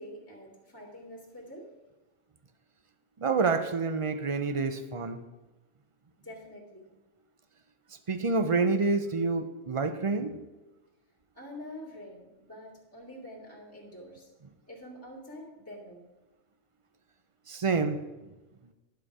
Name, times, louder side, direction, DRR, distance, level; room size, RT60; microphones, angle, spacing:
voice 1, 0.0-1.7 6.2-6.9 11.3-14.3 14.7-16.1, left 1 dB, 10° left, -3 dB, 2.3 m, -46 dB
voice 2, 3.2-5.2 8.1-10.4 17.5-18.0, right 4 dB, 50° right, 8 dB, 0.4 m, -28 dB
10.5 x 7.7 x 4.8 m, 1.1 s
omnidirectional pair, 1.4 m